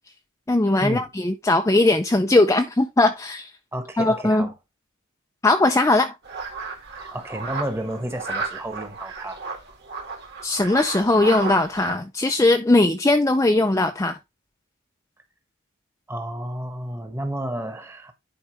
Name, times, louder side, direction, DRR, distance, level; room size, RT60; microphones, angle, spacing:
voice 1, 0.5-3.5 4.0-4.5 5.4-6.1 10.4-14.2, left 2 dB, 15° left, 0.5 m, -19 dB
voice 2, 3.7-4.5 7.0-9.4 16.1-18.1, right 1 dB, 10° right, 1.2 m, -31 dB
sound 1, 6.2-11.9, right 4 dB, 50° right, 2.2 m, -33 dB
11.0 x 4.7 x 3.1 m
head